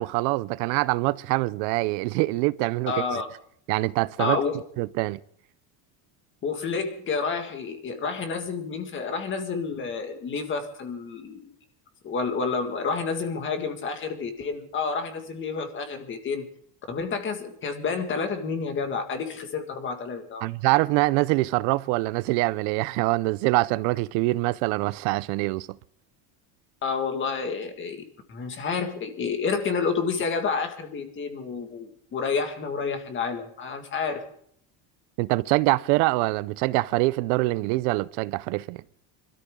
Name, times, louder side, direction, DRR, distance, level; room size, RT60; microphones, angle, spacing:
voice 1, 0.0-3.2 3.7-4.4 4.8-5.2 20.4-25.7 35.2-38.8, right 21 dB, 75° right, 0.6 m, -24 dB
voice 2, 2.9-3.3 4.2-4.6 6.4-11.5 12.0-16.5 16.9-20.5 26.8-34.2, left 5 dB, 25° left, 1.9 m, -29 dB
25.5 x 13.0 x 3.7 m
cardioid pair, 170°, 44 cm